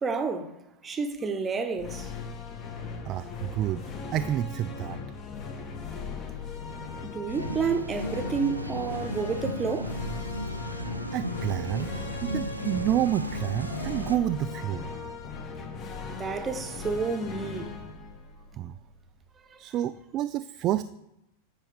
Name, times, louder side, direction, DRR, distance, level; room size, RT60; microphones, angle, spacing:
voice 1, 0.0-0.5 0.8-2.1 7.0-10.0 16.2-17.8 19.5-19.6, right 5 dB, 20° right, 0.9 m, -30 dB
sound 1, 1.7-19.2, left 4 dB, 30° left, 1.3 m, -39 dB
voice 2, 3.1-3.8 4.1-5.0 11.1-11.9 12.2-15.1 18.6-18.7 19.6-20.8, right 12 dB, 35° right, 0.3 m, -29 dB
sound 2, 7.3-14.2, right 1 dB, 85° right, 0.5 m, -35 dB
14.0 x 5.4 x 3.5 m
figure-of-eight pair, 90°, 0 cm